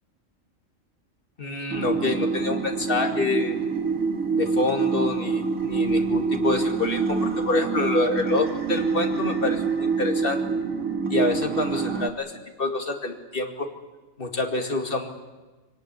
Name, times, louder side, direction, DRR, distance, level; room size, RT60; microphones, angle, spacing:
voice 1, 1.4-3.6 4.3-10.4 11.1-12.3 12.6-13.7 14.2-15.1, left 2 dB, 40° left, 4 dB, 2.6 m, -27 dB
sound 1, 1.7-12.1, right 4 dB, 85° right, 2.2 m, -26 dB
23.0 x 19.0 x 9.6 m, 1.2 s
omnidirectional pair, 1.4 m